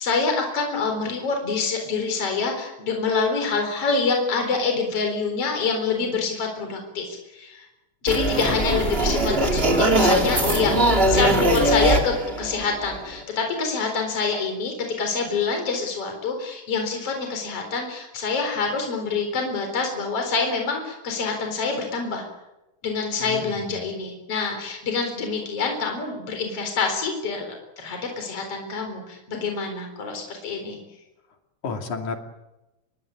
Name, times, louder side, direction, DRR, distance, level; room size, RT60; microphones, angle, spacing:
voice 1, 0.0-7.7 8.0-22.2 22.8-30.8, left 4 dB, 50° left, 4 dB, 5.0 m, -26 dB
sound 1, 8.1-13.2, right 1 dB, 20° right, 2.6 m, -21 dB
voice 2, 8.4-9.0 23.2-23.9 31.6-32.2, left 4 dB, 70° left, 4 dB, 4.1 m, -32 dB
26.5 x 22.5 x 8.7 m, 0.97 s
omnidirectional pair, 3.5 m